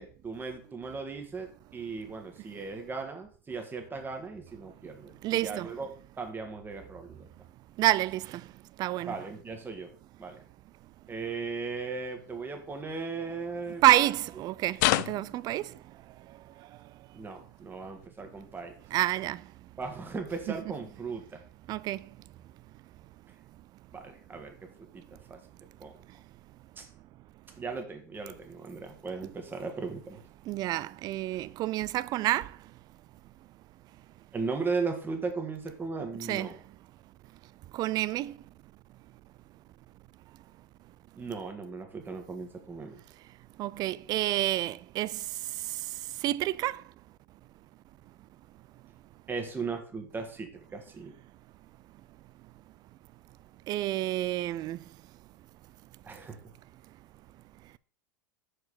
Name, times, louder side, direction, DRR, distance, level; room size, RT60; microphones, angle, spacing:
voice 1, 0.0-7.3 9.0-9.9 10.2-10.4 11.1-13.8 17.1-18.7 19.8-21.4 23.9-25.4 25.8-25.9 26.8-26.9 27.6-30.2 34.3-36.6 41.2-43.0 49.3-51.1 56.0-56.4, right 4 dB, 20° right, 1.6 m, -37 dB
voice 2, 5.2-5.7 7.8-8.4 8.8-9.2 13.8-14.8 15.1-15.7 18.9-19.4 20.5-20.6 21.7-22.0 30.5-32.5 36.3-36.5 37.7-38.3 43.6-45.2 46.2-46.8 53.7-54.8, right 15 dB, 35° right, 0.3 m, -28 dB
sound 1, 14.8-15.4 18.6-18.7, left 17 dB, 60° left, 0.4 m, -26 dB
6.6 x 4.8 x 4.8 m
hypercardioid pair, 95°, 11 cm